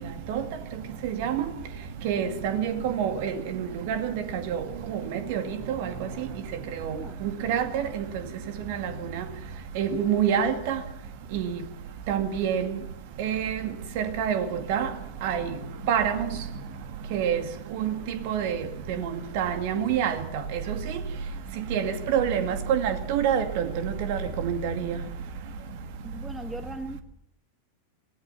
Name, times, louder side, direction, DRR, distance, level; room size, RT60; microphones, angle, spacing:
voice 1, 2.0-3.3 3.9-4.0 5.3-5.4 7.5-7.6 9.8-10.8 11.3-11.5 12.1-12.6 13.2-13.5 14.0-14.9 15.2-15.4 15.9-16.2 17.1-17.4 17.8-17.9 18.3-18.6 19.4-20.1 21.7-23.4 24.1-24.2 24.4-24.7, right 8 dB, 50° right, 2.2 m, -25 dB
voice 2, 26.0-27.0, right 2 dB, 5° right, 1.3 m, -38 dB
24.0 x 16.5 x 7.1 m
figure-of-eight pair, 90°, 0 cm